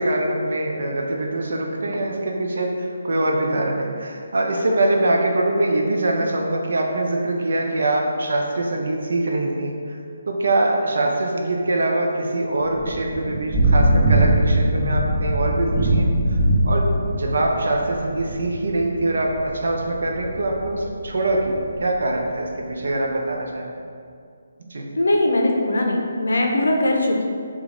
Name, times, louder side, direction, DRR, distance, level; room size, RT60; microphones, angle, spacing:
voice 1, 0.0-10.0 10.3-16.4 16.6-23.7 24.7-24.9, right 2 dB, 70° right, 0 dB, 0.5 m, -23 dB
Thunder / Rain, 12.6-22.1, right 1 dB, 30° right, 1.0 m, -22 dB
voice 2, 25.0-27.2, left 1 dB, 80° left, 1 dB, 0.5 m, -20 dB
3.2 x 2.4 x 3.6 m, 2.3 s
figure-of-eight pair, 150°, 0 cm